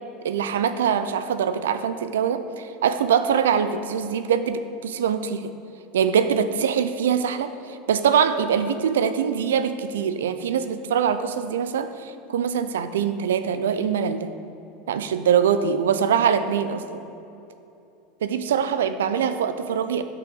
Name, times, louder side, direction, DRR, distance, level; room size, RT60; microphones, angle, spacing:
voice 1, 0.2-5.5 5.9-14.3 14.9-16.8 18.2-20.0, right 7 dB, 80° right, 11 dB, 0.4 m, -23 dB
6.0 x 5.9 x 6.2 m, 2.8 s
hypercardioid pair, 85°, 0 cm